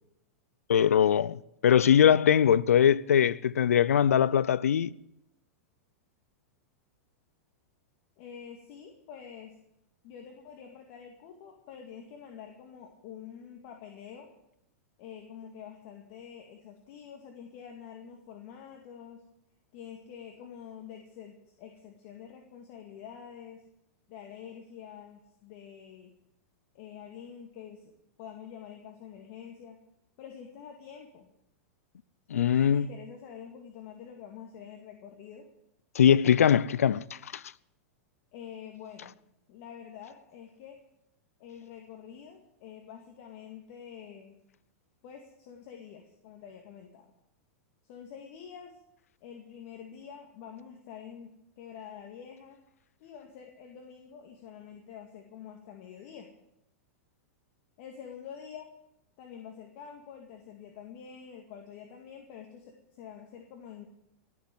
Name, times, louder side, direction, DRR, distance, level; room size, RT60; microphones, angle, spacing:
voice 1, 0.7-4.9 32.3-32.9 36.0-37.4, left 9 dB, 85° left, 0.5 m, -22 dB
voice 2, 8.2-9.5 10.0-14.3 15.0-19.2 19.7-23.6 24.1-26.1 26.7-27.9 28.2-29.8 30.2-31.3 32.3-35.5 38.3-39.1 39.5-40.8 41.4-44.3 45.0-47.1 47.8-48.8 49.2-52.6 53.0-56.3 57.8-58.7 59.2-63.9, left 8 dB, 55° left, 2.2 m, -47 dB
17.5 x 7.3 x 9.5 m
hypercardioid pair, 110°, 8 cm